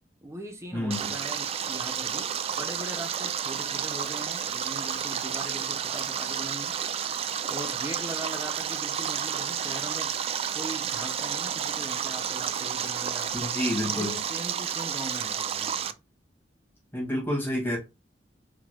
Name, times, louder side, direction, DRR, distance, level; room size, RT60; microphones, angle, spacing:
voice 1, 0.2-6.8 7.5-10.2 10.5-13.6 13.9-16.0, right 1 dB, 15° right, 0.8 m, -40 dB
voice 2, 0.7-1.1 13.3-14.2 16.9-17.8, left 1 dB, 15° left, 1.9 m, -29 dB
Stream, 0.9-15.9, right 8 dB, 35° right, 0.3 m, -31 dB
4.7 x 3.8 x 2.2 m
head